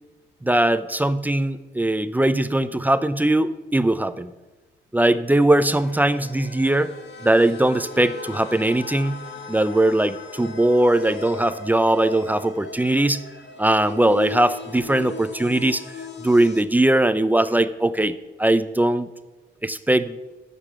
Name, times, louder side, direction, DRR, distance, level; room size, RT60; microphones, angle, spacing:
voice 1, 0.4-4.3 4.9-6.9 7.2-13.2 13.6-19.1 19.6-20.3, right 1 dB, 10° right, 13 dB, 0.4 m, -20 dB
sound 1, 5.6-16.6, left 3 dB, 65° left, 1.3 m, -38 dB
7.0 x 6.8 x 6.0 m, 1.1 s
cardioid pair, 90°, 20 cm